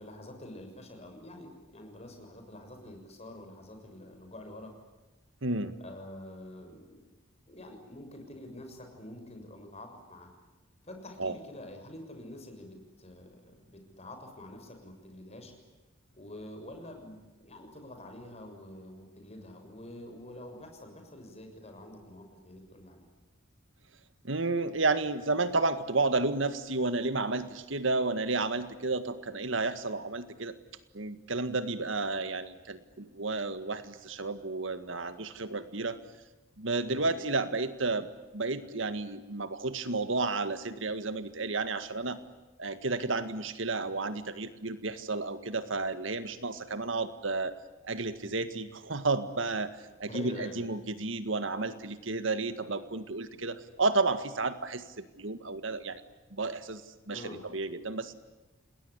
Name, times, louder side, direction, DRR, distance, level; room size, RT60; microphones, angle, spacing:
voice 1, 0.0-4.7 5.8-7.0 7.5-10.3 10.8-15.5 16.1-17.2 17.4-23.0 36.8-37.1 50.0-50.6 57.1-57.4, left 1 dB, 30° left, 4 dB, 6.8 m, -46 dB
voice 2, 5.4-5.7 11.2-11.4 24.2-30.6 30.9-36.0 36.6-38.1 38.3-42.2 42.6-47.5 47.8-49.7 50.0-56.0 56.3-56.8 57.1-57.2 57.5-58.1, right 3 dB, 70° right, 11 dB, 1.8 m, -31 dB
29.5 x 20.5 x 9.9 m, 1.1 s
head